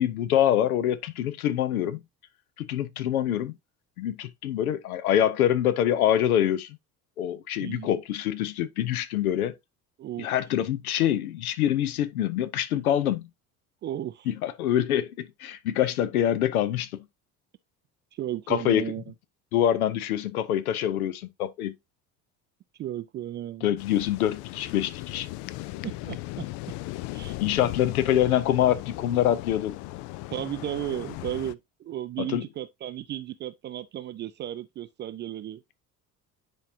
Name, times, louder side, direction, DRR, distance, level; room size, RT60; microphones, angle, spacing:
voice 1, 0.0-2.0 2.6-3.5 4.0-6.8 7.2-9.5 10.2-13.3 14.3-16.9 18.5-18.9 19.5-21.7 23.6-25.3 27.4-29.8 32.2-32.4, left 11 dB, 70° left, 0.8 m, -25 dB
voice 2, 7.6-7.9 10.0-10.3 13.8-14.3 15.8-15.9 18.1-19.0 22.8-23.7 25.8-26.5 27.1-27.4 30.3-35.6, right 12 dB, 25° right, 0.4 m, -34 dB
sound 1, 23.8-31.5, left 18 dB, 45° left, 0.4 m, -37 dB
9.8 x 4.6 x 2.7 m
figure-of-eight pair, 60°, 45 cm